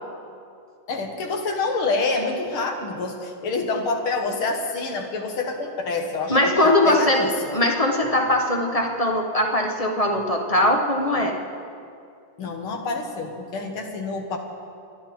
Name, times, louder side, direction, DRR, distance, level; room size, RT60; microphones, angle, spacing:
voice 1, 0.9-6.4 6.6-7.6 12.4-14.4, left 3 dB, 75° left, 3 dB, 2.3 m, -27 dB
voice 2, 6.3-7.2 7.5-11.4, left 1 dB, 35° left, 2 dB, 0.6 m, -20 dB
26.0 x 11.5 x 4.3 m, 2.5 s
omnidirectional pair, 2.4 m